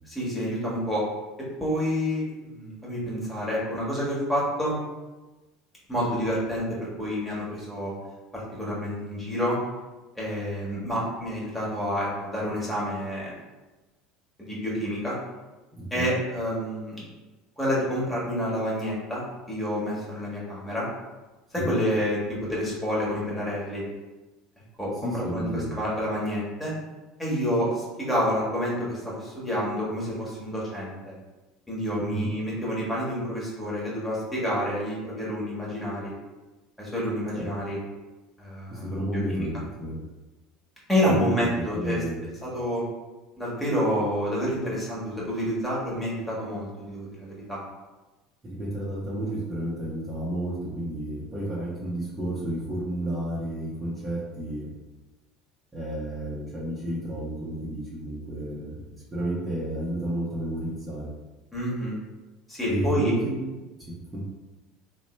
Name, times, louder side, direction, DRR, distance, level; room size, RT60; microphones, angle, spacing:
voice 1, 0.0-1.0 1.4-4.8 5.9-7.9 8.3-9.6 10.1-13.3 14.4-15.2 15.9-17.0 17.6-20.9 21.5-23.8 24.8-26.7 27.2-31.1 31.7-36.1 36.8-37.8 38.4-39.5 40.9-42.0 42.4-42.8 43.4-47.6 61.5-61.9 62.5-63.1, equal, 10° left, -6 dB, 1.4 m, -28 dB
voice 2, 15.8-16.2 21.6-21.7 25.0-25.7 32.0-32.3 37.4-37.5 38.7-39.5 39.8-40.0 41.1-41.5 41.8-42.2 48.4-54.7 55.7-58.8 59.1-61.1 62.7-63.4 63.8-64.2, right 1 dB, 20° right, -7 dB, 0.9 m, -31 dB
3.0 x 2.2 x 3.1 m, 1.2 s
hypercardioid pair, 70°, 0 cm